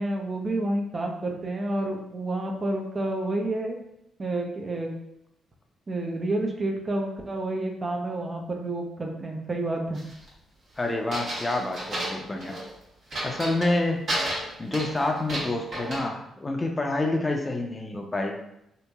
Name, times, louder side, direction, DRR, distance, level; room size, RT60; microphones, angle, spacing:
voice 1, 0.0-3.8 4.2-4.9 5.9-10.0, right 2 dB, 40° right, 2 dB, 0.5 m, -29 dB
sound 1, 9.9-10.3 11.1-12.7 13.1-13.8 14.1-16.0, right 1 dB, 55° right, 1.0 m, -32 dB
voice 2, 10.8-12.6 13.2-14.0 14.6-18.4, left 2 dB, 25° left, 2 dB, 0.5 m, -28 dB
2.9 x 2.6 x 2.2 m, 0.81 s
hypercardioid pair, 45°, 0 cm